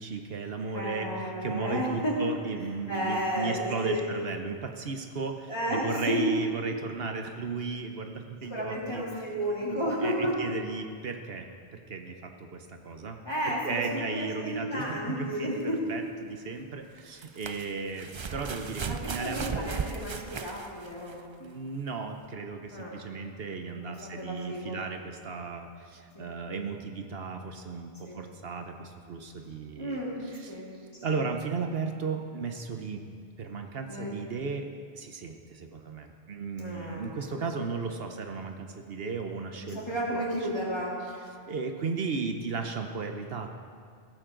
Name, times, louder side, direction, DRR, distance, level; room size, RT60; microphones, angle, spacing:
voice 1, 0.0-1.1 1.4-9.0 9.6-13.2 13.5-15.6 15.9-19.4 21.4-30.0 30.2-30.5 31.0-33.0 33.4-34.7 34.9-39.8 40.1-40.2 41.5-43.5, right 4 dB, 70° right, 5 dB, 1.0 m, -35 dB
voice 2, 0.6-2.2 2.6-4.0 5.5-6.2 8.5-10.4 13.2-15.8 18.9-21.2 22.7-23.0 23.7-24.8 26.1-26.3 28.1-28.2 29.8-30.2 30.5-30.8 31.1-31.2 33.9-34.1 36.6-37.7 39.6-41.0, equal, 25° left, -5 dB, 3.0 m, -33 dB
sound 1, 14.9-15.0 17.0-21.3 22.2-22.3, right 6 dB, 50° right, 0.3 m, -36 dB
16.5 x 13.5 x 3.8 m, 2.2 s
omnidirectional pair, 1.1 m